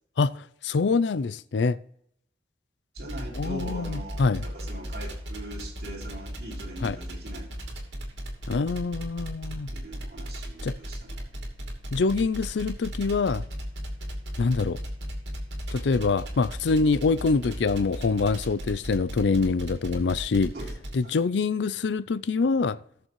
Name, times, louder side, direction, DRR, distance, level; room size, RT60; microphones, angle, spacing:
voice 1, 0.6-1.8 3.4-4.4 6.8-7.0 8.5-9.7 10.6-10.8 11.9-13.4 14.4-14.8 15.7-20.5 20.9-22.8, left 4 dB, 80° left, 0.5 m, -25 dB
voice 2, 2.9-7.5 9.7-11.3 20.5-20.7 21.0-21.1, right 1 dB, 60° right, 3.1 m, -41 dB
sound 1, 3.0-21.0, equal, 80° right, 2.7 m, -36 dB
19.0 x 6.7 x 3.1 m
head